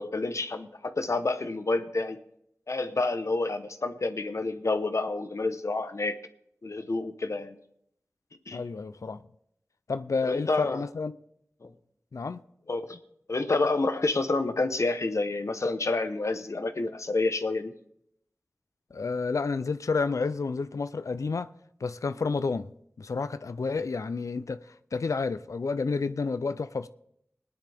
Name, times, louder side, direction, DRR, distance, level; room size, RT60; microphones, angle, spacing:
voice 1, 0.0-2.2 2.7-6.2 6.6-7.6 8.5-8.6 10.2-10.8 11.6-11.7 12.7-13.0 13.3-17.7, left 3 dB, 70° left, 0.9 m, -29 dB
voice 2, 8.5-9.2 9.9-11.1 12.1-12.4 18.9-21.5 21.8-22.7 23.0-26.9, left 4 dB, 85° left, 0.4 m, -30 dB
19.5 x 10.0 x 3.5 m
wide cardioid pair, 55°, 5 cm